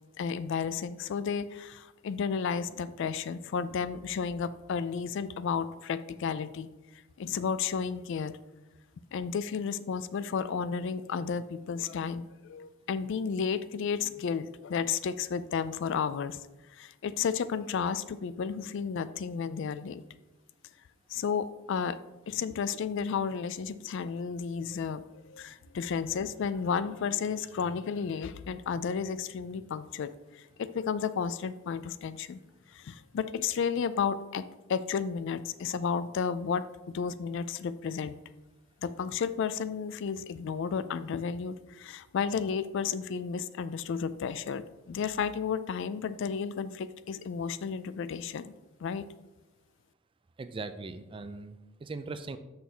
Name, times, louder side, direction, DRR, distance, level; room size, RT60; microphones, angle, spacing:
voice 1, 0.2-6.7 7.2-8.3 9.1-16.4 16.7-20.0 21.1-22.0 22.3-32.4 32.7-38.2 38.8-48.5 48.8-49.0, left 6 dB, 60° left, 15 dB, 0.3 m, -32 dB
voice 2, 50.4-52.4, right 3 dB, 25° right, 10 dB, 0.3 m, -40 dB
6.4 x 6.0 x 3.4 m, 1.1 s
head